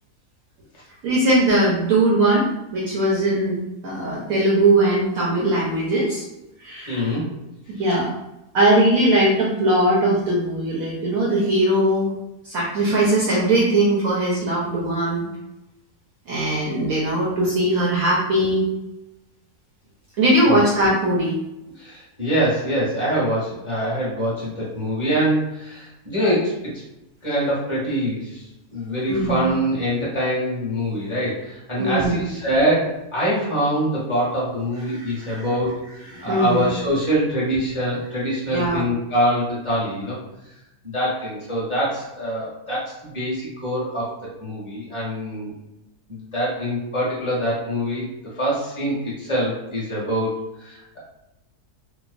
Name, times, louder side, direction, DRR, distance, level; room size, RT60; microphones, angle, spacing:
voice 1, 1.0-2.5 2.7-6.3 6.6-7.1 7.7-8.1 8.5-12.1 12.4-15.3 16.3-18.6 20.2-21.4 29.1-29.5 31.8-32.2 34.9-35.5 36.0-36.7 38.5-38.8, right 1 dB, 70° right, -4 dB, 0.9 m, -20 dB
voice 2, 6.9-7.3 20.5-20.6 21.8-26.7 27.2-35.8 36.2-40.2 40.8-44.1 44.4-45.5 46.1-48.0 48.3-50.3 50.6-51.0, equal, 20° left, -7 dB, 1.0 m, -24 dB
3.0 x 2.0 x 2.4 m, 0.92 s
omnidirectional pair, 1.9 m